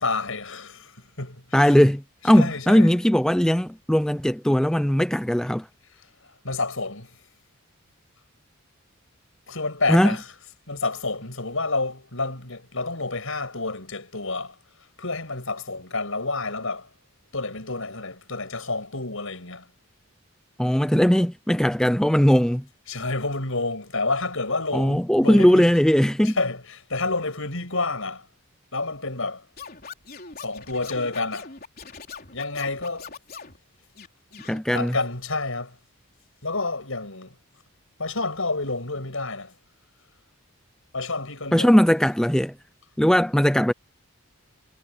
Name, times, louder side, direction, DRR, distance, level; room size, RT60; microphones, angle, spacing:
voice 1, 0.0-1.8 2.3-3.0 6.0-7.2 9.5-10.3 10.7-16.9 17.3-19.7 22.9-25.7 26.2-28.3 28.7-29.5 30.4-31.5 32.3-33.2 34.7-35.8 36.4-37.4 38.0-39.6 40.9-41.8, left 3 dB, 70° left, 6.3 m, -29 dB
voice 2, 1.5-5.7 9.9-10.1 20.6-22.6 24.7-26.3 34.5-34.9 41.5-42.5 43.0-43.7, equal, 5° left, 0.4 m, -19 dB
Scratching (performance technique), 29.6-33.6 34.0-34.6, left 5 dB, 45° left, 4.0 m, -42 dB
head